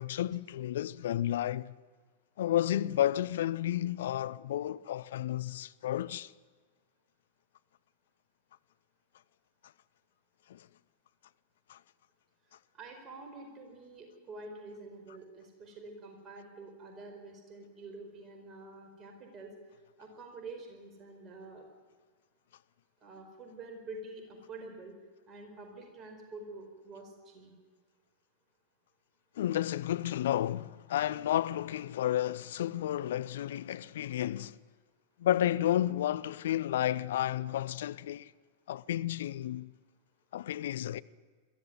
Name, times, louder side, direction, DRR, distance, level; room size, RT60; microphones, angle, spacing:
voice 1, 0.0-1.7 2.4-6.3 10.5-10.7 11.7-11.8 29.4-34.6 35.2-38.3 38.7-39.7 40.3-41.0, left 12 dB, 60° left, 0.6 m, -31 dB
voice 2, 12.7-19.5 20.0-21.6 23.0-24.9 25.3-27.5, right 3 dB, 30° right, 4.6 m, -47 dB
22.0 x 15.0 x 9.4 m
figure-of-eight pair, 90°, 0 cm